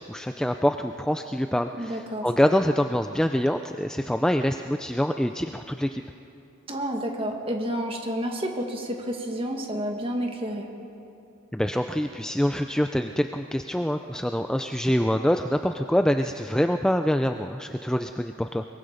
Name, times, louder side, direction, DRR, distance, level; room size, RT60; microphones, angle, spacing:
voice 1, 0.0-6.0 11.5-18.7, equal, 5° left, 6 dB, 0.4 m, -25 dB
voice 2, 1.8-2.3 6.7-10.7, equal, 25° right, 2 dB, 1.9 m, -30 dB
23.0 x 22.5 x 5.1 m, 2.9 s
head